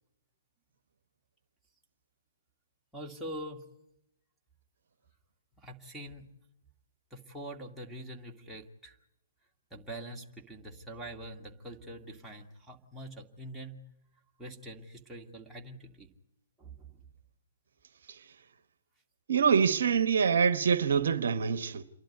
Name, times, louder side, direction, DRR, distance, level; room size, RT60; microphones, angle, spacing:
voice 1, 2.9-3.6 5.6-6.3 7.1-9.0 9.7-13.8 14.4-16.1 16.6-17.0, right 1 dB, 5° right, 2.3 m, -44 dB
voice 2, 19.3-21.8, right 6 dB, 65° right, 1.0 m, -25 dB
28.0 x 11.5 x 9.4 m
figure-of-eight pair, 125°, 0 cm